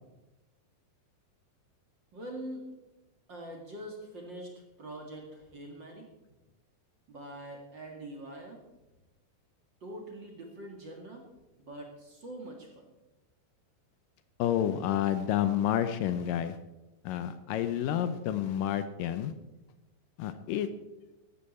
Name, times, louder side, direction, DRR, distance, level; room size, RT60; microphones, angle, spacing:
voice 1, 2.1-2.7 3.3-4.5 4.8-6.1 7.1-8.6 9.8-11.3 11.6-12.9, right 1 dB, 40° right, 1 dB, 2.2 m, -43 dB
voice 2, 14.4-16.6 17.0-19.3 20.2-20.7, left 10 dB, 80° left, 11 dB, 2.2 m, -29 dB
15.5 x 12.5 x 4.3 m, 1.0 s
omnidirectional pair, 4.2 m